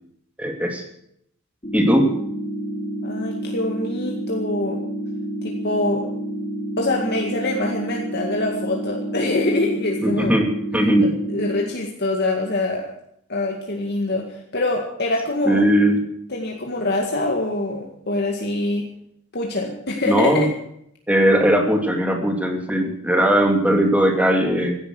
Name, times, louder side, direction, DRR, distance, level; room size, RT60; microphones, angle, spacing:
voice 1, 0.4-0.8 1.7-2.1 10.0-10.5 10.7-11.1 15.4-16.0 20.1-20.5 21.1-24.8, equal, 5° right, 3 dB, 2.6 m, -18 dB
sound 1, 1.6-11.6, right 1 dB, 30° left, 4.5 m, -29 dB
voice 2, 3.0-4.8 5.4-6.1 6.8-10.3 11.0-12.9 13.3-15.6 16.3-18.9 19.3-20.5, left 2 dB, 50° left, 0 dB, 2.1 m, -24 dB
16.0 x 10.5 x 7.8 m, 0.72 s
head